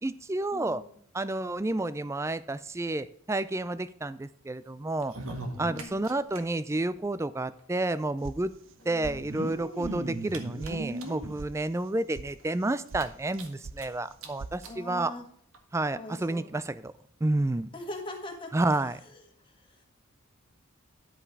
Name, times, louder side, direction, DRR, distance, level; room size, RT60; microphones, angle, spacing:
voice 1, 0.0-0.8 1.1-5.1 5.6-8.5 8.9-15.1 15.7-16.9 17.2-17.7 18.5-19.0, right 2 dB, 15° right, 15 dB, 0.3 m, -30 dB
voice 2, 0.5-1.0 5.5-6.1 8.8-9.3 14.7-15.2 15.9-16.4 17.7-18.5 19.4-19.8, left 2 dB, 25° left, 2 dB, 1.7 m, -42 dB
sound 1, 5.0-6.4 6.7-6.8 7.0-7.1 8.1-8.2 9.1-11.4 11.9-12.0 12.4-12.5 12.9-13.9 14.2-14.3 14.6-14.8 15.5-15.6, right 1 dB, 80° right, 1.7 m, -37 dB
sound 2, 8.2-8.8 9.0-9.6 9.8-9.9 10.3-10.7 11.0-11.5 11.8-12.3 12.6-13.1 13.3-13.8 14.1-14.6, right 4 dB, 60° right, 0.5 m, -42 dB
10.5 x 5.7 x 4.7 m, 0.67 s
head